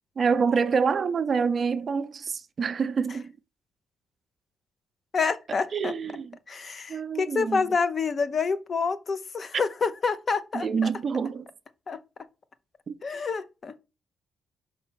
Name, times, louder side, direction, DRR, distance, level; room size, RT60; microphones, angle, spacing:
voice 1, 0.2-3.3 5.7-6.3 6.9-7.7 10.5-11.5 12.9-13.0, right 5 dB, 45° right, 0.6 m, -26 dB
voice 2, 5.1-5.9 6.5-10.9 11.9-12.0 13.0-13.7, left 5 dB, 40° left, 0.8 m, -28 dB
5.7 x 4.3 x 5.7 m
cardioid pair, 90°, 0 cm